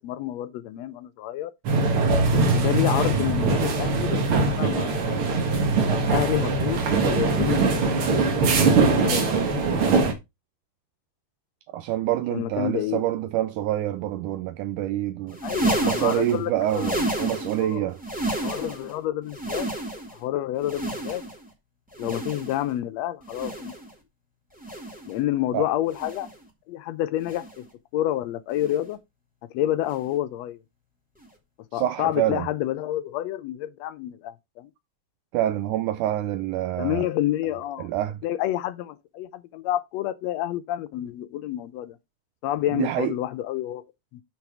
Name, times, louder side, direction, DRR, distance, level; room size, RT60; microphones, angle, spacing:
voice 1, 0.0-1.5 2.5-5.3 5.9-7.9 8.5-9.5 12.3-13.0 15.4-16.9 17.2-17.9 18.4-19.7 20.2-21.2 22.0-23.7 25.1-26.3 26.7-27.6 27.9-29.0 29.5-30.6 31.7-34.7 36.8-42.0 42.4-43.8 44.1-44.2, left 13 dB, 80° left, 1.5 m, -29 dB
sound 1, 1.6-10.1, right 3 dB, 50° right, 1.8 m, -22 dB
voice 2, 11.7-15.4 15.8-18.0 25.5-25.6 31.7-32.5 35.3-37.0 37.8-38.2 42.7-43.1, right 13 dB, 80° right, 2.0 m, -26 dB
sound 2, 15.3-17.7 18.0-18.9 19.3-20.2 20.6-21.5 21.9-22.7 23.2-23.9 24.6-25.1 25.9-26.4 27.2-27.7 28.6-28.9 29.9-30.1 31.2-31.3, right 1 dB, 5° right, 1.7 m, -31 dB
6.3 x 6.0 x 4.9 m
omnidirectional pair, 3.7 m